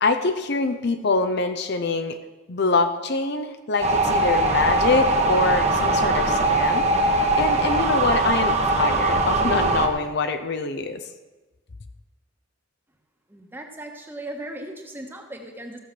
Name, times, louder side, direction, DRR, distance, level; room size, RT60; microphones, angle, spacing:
voice 1, 0.0-2.2 2.5-6.9 7.3-11.0, left 3 dB, 55° left, 8 dB, 0.7 m, -24 dB
sound 1, 3.8-9.9, right 2 dB, 35° right, 1.2 m, -21 dB
voice 2, 13.3-15.8, right 1 dB, 10° right, 2 dB, 1.3 m, -37 dB
15.5 x 6.9 x 6.1 m, 1.1 s
head